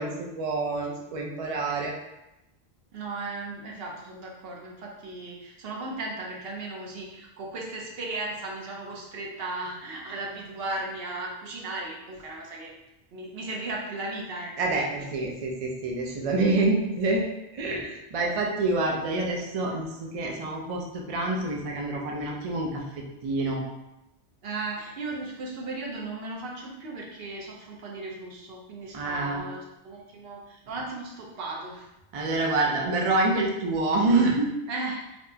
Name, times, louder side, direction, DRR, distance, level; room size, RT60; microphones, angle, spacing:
voice 1, 0.0-1.9 14.6-17.2 17.5-23.6 28.9-29.5 32.1-34.5, right 2 dB, 50° right, -1 dB, 0.4 m, -27 dB
voice 2, 2.9-12.7 13.1-15.1 24.4-31.9 34.7-35.0, right 2 dB, 65° right, -2 dB, 0.9 m, -36 dB
4.3 x 2.1 x 2.7 m, 0.93 s
omnidirectional pair, 1.1 m